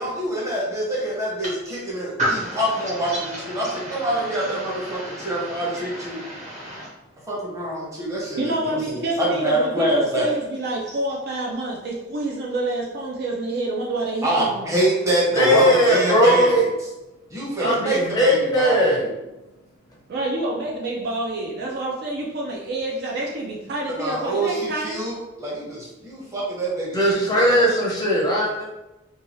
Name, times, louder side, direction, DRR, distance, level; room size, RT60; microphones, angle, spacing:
voice 1, 0.0-2.2 2.6-6.2 7.3-10.3 14.2-16.7 17.3-19.1 23.9-27.6, right 1 dB, 15° right, -6 dB, 0.8 m, -25 dB
voice 2, 2.2-6.9, right 1 dB, 40° right, -7 dB, 1.2 m, -31 dB
voice 3, 8.4-14.7 17.6-18.0 20.1-25.0, right 2 dB, 55° right, -3 dB, 0.4 m, -28 dB
voice 4, 15.3-16.7 17.6-19.1 26.9-28.6, equal, 20° left, -3 dB, 0.5 m, -19 dB
2.7 x 2.3 x 2.9 m, 0.99 s
head